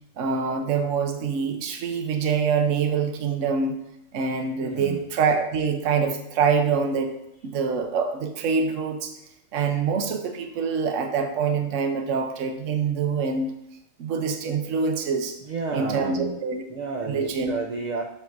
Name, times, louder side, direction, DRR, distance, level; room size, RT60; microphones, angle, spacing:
voice 1, 0.2-3.8 4.1-7.1 7.4-9.1 9.5-13.5 14.0-15.4 15.7-16.7 17.1-17.5, right 5 dB, 70° right, 6 dB, 1.1 m, -25 dB
voice 2, 4.5-5.0 15.4-16.4 16.7-18.0, right 4 dB, 55° right, 2 dB, 0.5 m, -31 dB
7.7 x 7.5 x 2.5 m, 0.80 s
omnidirectional pair, 1.4 m